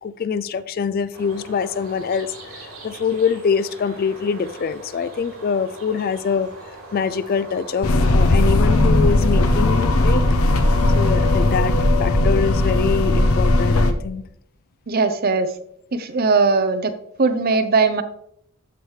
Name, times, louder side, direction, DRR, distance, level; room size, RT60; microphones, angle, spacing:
voice 1, 0.0-6.5 6.9-10.2 10.9-14.2, left 6 dB, 45° left, 15 dB, 0.3 m, -24 dB
sound 1, 1.1-11.8, right 1 dB, 75° right, 3.6 m, -40 dB
sound 2, 7.8-13.9, left 2 dB, 80° left, 0.7 m, -17 dB
voice 2, 14.9-15.5 15.9-16.9 17.2-18.0, right 4 dB, 45° right, 11 dB, 0.6 m, -19 dB
13.5 x 4.9 x 3.2 m, 0.73 s
head